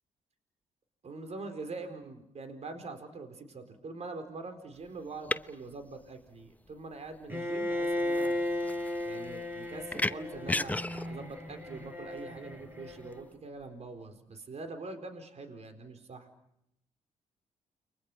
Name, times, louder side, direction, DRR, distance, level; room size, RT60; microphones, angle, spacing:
voice 1, 1.0-8.4 9.1-16.3, right 3 dB, 55° right, 7 dB, 4.3 m, -44 dB
sound 1, 4.7-13.2, left 2 dB, 10° left, 0.9 m, -37 dB
Bowed string instrument, 7.3-13.3, left 1 dB, 15° right, 5.2 m, -35 dB
30.0 x 23.0 x 6.1 m, 0.77 s
supercardioid pair, 55°, 14 cm